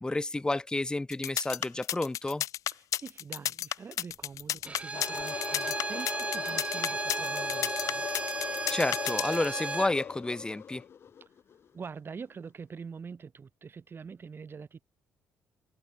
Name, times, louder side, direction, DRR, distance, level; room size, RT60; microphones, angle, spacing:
voice 1, 0.0-2.4 8.7-10.8, left 2 dB, 15° left, 0.8 m, -30 dB
sound 1, 1.1-9.4, left 12 dB, 70° left, 1.0 m, -32 dB
voice 2, 2.7-8.1 11.7-14.8, right 5 dB, 40° right, 1.6 m, -44 dB
Bowed string instrument, 4.6-10.0, right 3 dB, 20° right, 0.6 m, -35 dB
sound 2, 4.9-11.6, left 8 dB, 45° left, 0.4 m, -39 dB
supercardioid pair, 70°, 6 cm